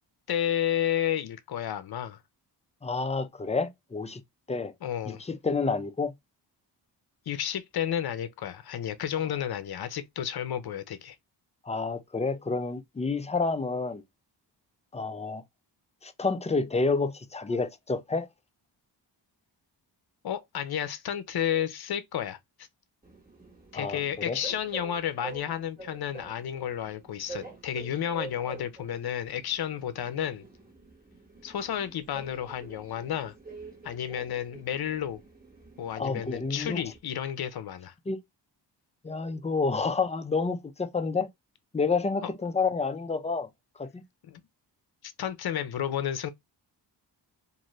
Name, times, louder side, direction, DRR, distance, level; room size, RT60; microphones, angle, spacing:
voice 1, 0.3-2.2 4.8-5.2 7.3-11.2 20.2-22.4 23.7-30.4 31.4-33.3 33.8-35.2 35.8-37.9 44.3-44.4 45.0-46.3, left 10 dB, 60° left, 0.6 m, -31 dB
voice 2, 2.8-4.2 4.5-4.7 5.1-6.1 11.6-14.0 14.9-15.4 16.0-18.3 23.7-24.0 24.3-24.4 36.0-36.8 38.1-38.2 39.0-41.3 41.7-43.5 43.8-44.0, left 4 dB, 15° left, 0.4 m, -29 dB
Train, 23.0-37.0, right 4 dB, 20° right, 1.3 m, -47 dB
2.6 x 2.5 x 3.1 m
wide cardioid pair, 95°, 43 cm